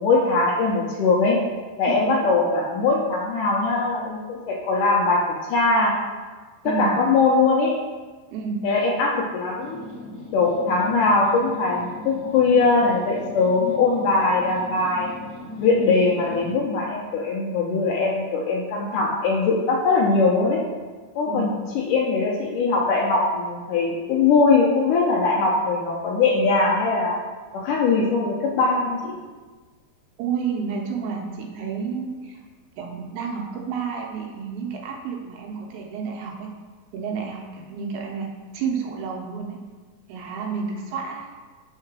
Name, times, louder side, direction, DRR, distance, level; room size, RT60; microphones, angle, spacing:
voice 1, 0.0-1.4 1.8-5.2 5.5-5.9 6.6-7.7 8.6-9.8 10.3-15.1 15.6-20.6 21.2-27.2 27.5-29.1, left 3 dB, 85° left, -2 dB, 1.8 m, -21 dB
voice 2, 8.3-8.6 15.8-15.9 21.3-21.5 30.2-32.4 32.8-36.5 36.9-38.3 38.5-39.6 40.1-41.3, right 6 dB, 80° right, 0 dB, 2.7 m, -30 dB
sound 1, 9.6-16.6, left 2 dB, 45° left, 2.0 m, -39 dB
5.7 x 3.8 x 6.0 m, 1.4 s
omnidirectional pair, 4.6 m